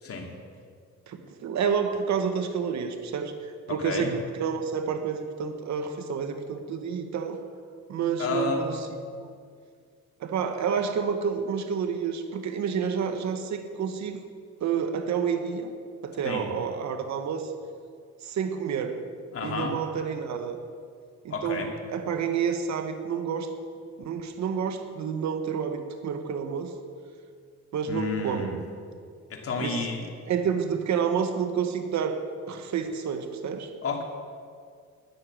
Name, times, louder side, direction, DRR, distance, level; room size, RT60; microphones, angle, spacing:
voice 1, 1.1-7.4 7.9-8.7 9.2-9.3 10.2-14.2 14.6-15.7 16.0-17.5 18.2-19.0 19.4-20.6 21.2-23.5 24.0-26.7 27.7-28.5 29.6-29.8 30.3-33.7, right 6 dB, 65° right, 7 dB, 1.3 m, -29 dB
voice 2, 3.7-4.1 8.2-8.7 16.2-16.5 19.3-19.8 21.3-21.7 27.9-28.6 29.3-30.1 33.8-34.0, left 4 dB, 50° left, 2 dB, 2.6 m, -31 dB
12.0 x 9.8 x 7.6 m, 2.1 s
cardioid pair, 90°, 30 cm